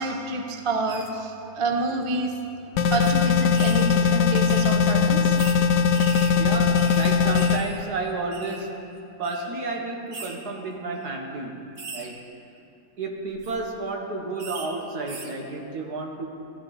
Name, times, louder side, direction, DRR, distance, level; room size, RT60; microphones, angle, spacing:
voice 1, 0.0-2.4 2.9-5.3, right 3 dB, 30° right, 3 dB, 0.6 m, -28 dB
sound 1, 0.9-1.1 1.9-2.0 2.3-2.4 3.0-3.1 3.5-3.9 4.5-4.7 5.4-5.6 5.9-7.8 8.0-8.6 9.2-9.4 10.1-10.3 10.9-11.1 11.8-12.1 13.2-13.5 14.4-14.7 15.1-15.3, right 4 dB, 45° right, 1.3 m, -40 dB
sound 2, 2.8-7.6, left 6 dB, 80° left, 1.2 m, -20 dB
voice 2, 6.4-12.2 13.0-16.3, right 3 dB, 70° right, 1 dB, 1.8 m, -32 dB
15.0 x 12.0 x 4.0 m, 2.8 s
omnidirectional pair, 1.8 m